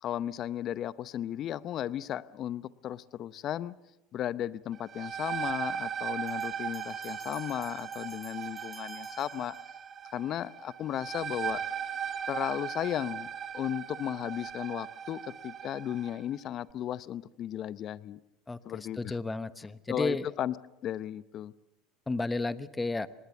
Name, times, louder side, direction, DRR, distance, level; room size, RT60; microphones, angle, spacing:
voice 1, 0.0-3.7 4.1-9.6 10.1-11.6 12.3-13.3 13.5-18.2 18.6-19.2 19.9-20.5 20.8-21.5, left 11 dB, 50° left, 17 dB, 0.8 m, -35 dB
sound 1, 4.7-16.2, right 8 dB, 40° right, 1.3 m, -38 dB
sound 2, 6.3-10.1, right 2 dB, 5° right, 6.8 m, -52 dB
voice 2, 18.5-20.3 22.1-23.1, left 3 dB, 15° left, 14 dB, 1.1 m, -33 dB
25.5 x 19.5 x 7.0 m, 0.97 s
hypercardioid pair, 80°, 0 cm